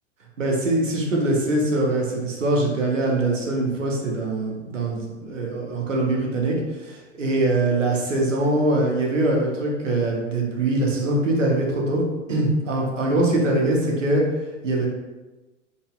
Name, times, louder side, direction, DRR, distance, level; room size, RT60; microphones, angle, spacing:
voice 1, 0.4-14.2 14.6-14.9, right 2 dB, 80° right, -1 dB, 0.9 m, -23 dB
3.9 x 2.2 x 2.4 m, 1.1 s
figure-of-eight pair, 100°, 37 cm